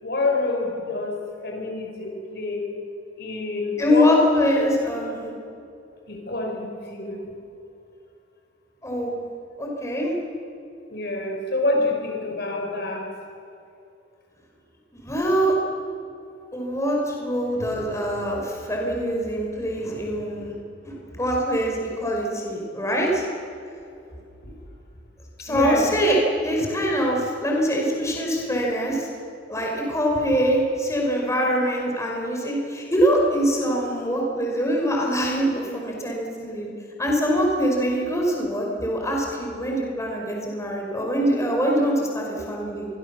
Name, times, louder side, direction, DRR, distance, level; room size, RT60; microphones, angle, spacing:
voice 1, 0.0-2.8 3.2-4.1 4.5-4.7 6.1-7.3 10.9-13.2 17.6-17.7 24.4-24.6 25.4-25.9 26.6-26.7, left 2 dB, 60° left, 2 dB, 5.4 m, -27 dB
voice 2, 3.8-5.3 8.8-9.1 9.6-10.1 14.9-15.6 16.5-20.5 20.8-23.2 25.4-26.2 26.4-29.1 29.5-36.7 37.0-42.9, equal, 15° left, -1 dB, 5.2 m, -23 dB
27.0 x 23.5 x 7.0 m, 2.6 s
head